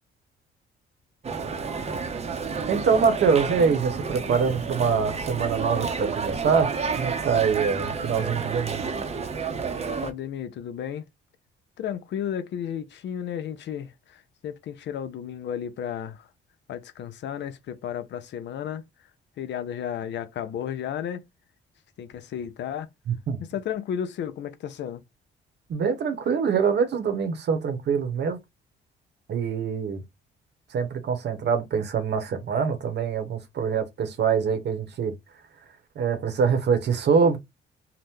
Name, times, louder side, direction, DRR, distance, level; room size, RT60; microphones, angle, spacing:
sound 1, 1.2-10.1, right 5 dB, 30° right, 0.7 m, -30 dB
voice 1, 2.7-8.9 23.3-23.4 25.7-28.4 29.3-30.0 30.7-35.1 36.0-37.4, right 6 dB, 60° right, 0.9 m, -24 dB
voice 2, 9.9-11.0 11.8-16.3 16.7-18.8 19.4-21.2 22.0-22.9 23.4-25.0, left 9 dB, 65° left, 0.5 m, -33 dB
2.9 x 2.1 x 3.5 m
cardioid pair, 90°, 20 cm